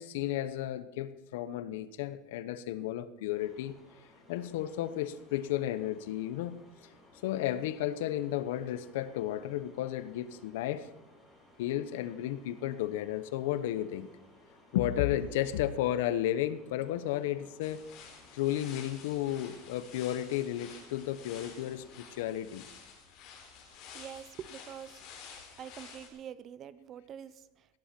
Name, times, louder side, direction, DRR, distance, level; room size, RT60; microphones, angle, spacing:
voice 1, 0.0-3.8 4.3-6.6 7.2-10.9 11.6-14.1 14.7-17.9 18.3-22.6, left 12 dB, 80° left, 14 dB, 1.0 m, -33 dB
sound 1, 3.3-22.2, left 1 dB, ahead, 6.3 m, -60 dB
sound 2, 17.6-26.1, left 6 dB, 45° left, 4.4 m, -51 dB
voice 2, 23.6-25.0 25.6-27.7, right 9 dB, 30° right, 16 dB, 0.7 m, -46 dB
16.5 x 10.5 x 6.1 m, 0.96 s
supercardioid pair, 160°, 0 cm